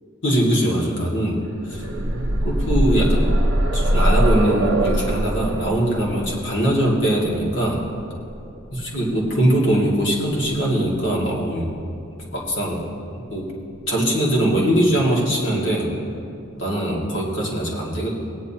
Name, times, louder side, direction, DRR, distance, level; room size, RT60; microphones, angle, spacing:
voice 1, 0.2-1.4 1.7-1.8 2.4-3.3 3.7-7.8 8.7-11.7 12.3-12.8 13.3-13.5 13.9-15.9 16.6-18.1, right 1 dB, 70° left, -4 dB, 2.2 m, -21 dB
sound 1, 1.5-9.3 10.5-10.6 11.0-11.1, right 1 dB, 70° right, 0.8 m, -22 dB
17.5 x 9.8 x 2.9 m, 2.5 s
head